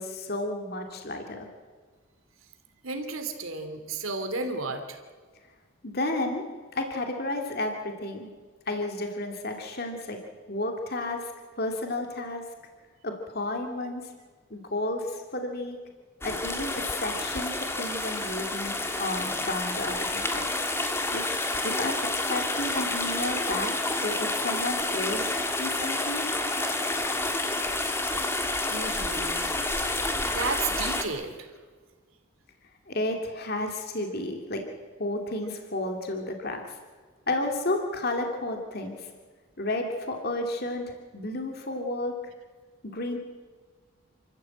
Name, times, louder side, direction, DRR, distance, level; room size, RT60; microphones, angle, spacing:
voice 1, 0.0-1.5 5.8-6.4 6.7-8.3 8.7-10.2 10.5-11.3 11.6-12.4 13.0-14.1 14.5-15.8 16.2-20.5 21.1-21.2 21.6-23.7 24.0-25.3 25.6-26.3 32.9-34.7 35.0-36.8 37.3-39.1 39.6-42.1 42.8-43.2, left 2 dB, 45° left, 3 dB, 2.5 m, -32 dB
voice 2, 2.8-5.0 28.2-29.5 29.8-30.0 30.3-31.5, right 3 dB, 75° right, 6 dB, 2.9 m, -33 dB
sound 1, 16.2-31.0, left 2 dB, 10° left, 1.8 m, -29 dB
29.0 x 14.0 x 8.7 m, 1.5 s
head